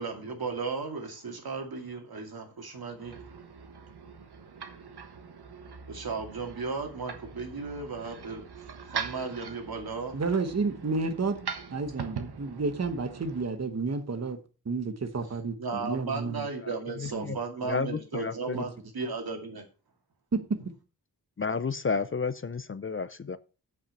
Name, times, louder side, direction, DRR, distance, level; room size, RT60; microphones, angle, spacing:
voice 1, 0.0-3.2 5.9-8.4 8.9-10.1 15.6-19.6, right 4 dB, 70° right, 2.4 m, -35 dB
sound 1, 2.9-13.5, right 6 dB, 85° right, 1.4 m, -42 dB
voice 2, 10.1-11.4 11.7-14.4 14.6-16.5 17.1-17.4 18.5-18.7 20.3-20.6, right 4 dB, 40° right, 1.2 m, -31 dB
voice 3, 16.6-17.4 17.6-18.6 21.4-23.4, left 5 dB, 35° left, 0.5 m, -32 dB
8.3 x 6.0 x 6.6 m
wide cardioid pair, 130°, 38 cm